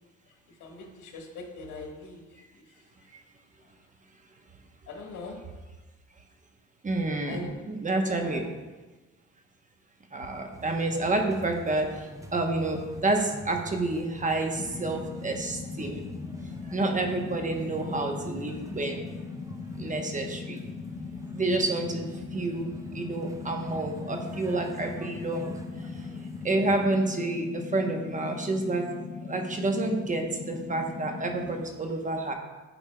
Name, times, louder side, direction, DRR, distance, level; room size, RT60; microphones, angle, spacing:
voice 1, 0.6-2.3 2.5-2.6 4.9-5.4 7.3-7.6 8.1-8.4, left 3 dB, 85° left, 1 dB, 1.4 m, -41 dB
voice 2, 6.8-8.4 10.1-11.9 12.3-16.0 16.7-19.0 19.8-20.6 21.3-22.1 22.3-25.5 26.4-28.9 29.3-32.3, right 2 dB, 25° right, 3 dB, 0.9 m, -29 dB
sound 1, 10.5-26.9, right 1 dB, 10° right, 0.6 m, -45 dB
sound 2, 14.5-31.6, left 5 dB, 65° left, 2.1 m, -39 dB
11.5 x 4.4 x 2.2 m, 1.2 s
cardioid pair, 90°, 30 cm